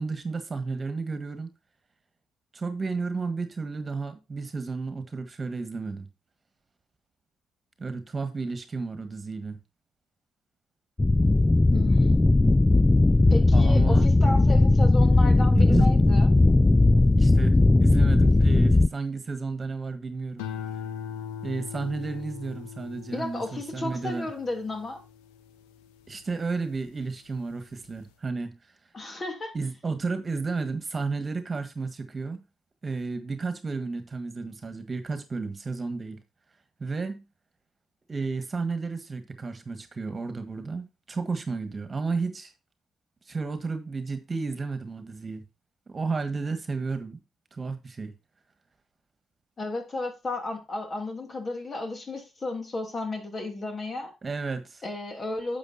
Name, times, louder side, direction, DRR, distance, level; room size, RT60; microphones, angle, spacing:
voice 1, 0.0-1.5 2.5-6.0 7.8-9.6 13.5-14.1 15.4-15.9 17.1-20.4 21.4-24.3 26.1-28.6 29.5-32.4 32.8-36.2 36.8-37.2 38.1-42.5 43.3-45.4 45.9-47.2 47.5-48.1 54.2-54.8, right 4 dB, 35° right, 1.6 m, -32 dB
sound 1, 11.0-18.9, left 2 dB, 20° left, 0.4 m, -18 dB
voice 2, 11.7-12.2 13.3-16.3 23.1-25.0 28.9-29.5 49.6-54.1 54.8-55.6, left 2 dB, 40° left, 2.9 m, -33 dB
sound 2, 20.4-26.9 27.4-27.9, left 8 dB, 85° left, 0.8 m, -40 dB
10.5 x 7.2 x 2.7 m
hypercardioid pair, 50°, 0 cm